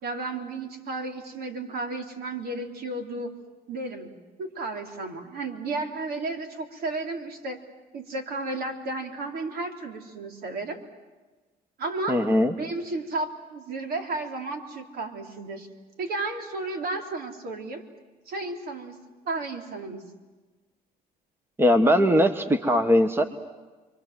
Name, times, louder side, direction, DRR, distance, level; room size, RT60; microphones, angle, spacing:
voice 1, 0.0-3.3 3.7-4.1 4.4-7.6 7.9-10.8 11.8-12.3 12.6-15.7 16.0-17.8 18.3-19.0 19.2-20.0, right 2 dB, 65° right, 4 dB, 3.7 m, -33 dB
voice 2, 12.1-12.5 21.6-23.2, equal, 15° right, 9 dB, 1.4 m, -20 dB
30.0 x 24.0 x 7.7 m, 1.3 s
cardioid pair, 110°, 17 cm